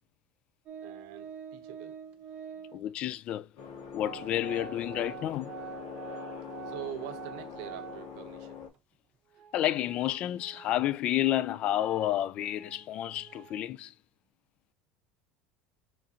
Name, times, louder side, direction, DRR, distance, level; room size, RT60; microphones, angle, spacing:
Organ, 0.7-2.9 3.7-3.8 4.0-8.4 8.7-8.8 9.3-13.7, right 9 dB, 45° right, 0.8 m, -47 dB
voice 1, 0.8-2.0 2.5-2.6 6.7-8.6, right 12 dB, 70° right, 0.8 m, -44 dB
voice 2, 2.7-3.5 3.9-5.5 9.5-13.9, left 13 dB, 45° left, 0.4 m, -30 dB
sound 1, 3.6-8.7, left 6 dB, 70° left, 1.7 m, -43 dB
5.0 x 3.7 x 2.8 m
supercardioid pair, 120°, 3 cm